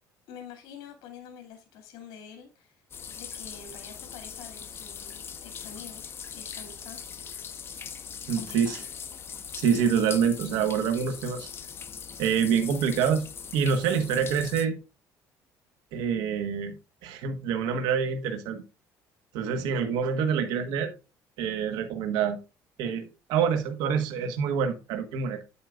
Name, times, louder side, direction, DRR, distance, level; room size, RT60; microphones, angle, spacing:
voice 1, 0.3-2.8 3.2-6.0 6.3-7.0 8.3-8.8, left 7 dB, 85° left, 3 dB, 2.5 m, -47 dB
sound 1, 2.9-14.7, left 7 dB, 35° left, 0.9 m, -41 dB
voice 2, 8.3-8.8 9.5-11.5 12.2-13.2 13.5-14.8 15.9-16.8 17.0-18.6 19.3-20.9 21.4-22.4 22.8-25.4, right 7 dB, 90° right, 6 dB, 1.3 m, -26 dB
9.2 x 8.5 x 2.4 m, 0.29 s
cardioid pair, 140°, 7 cm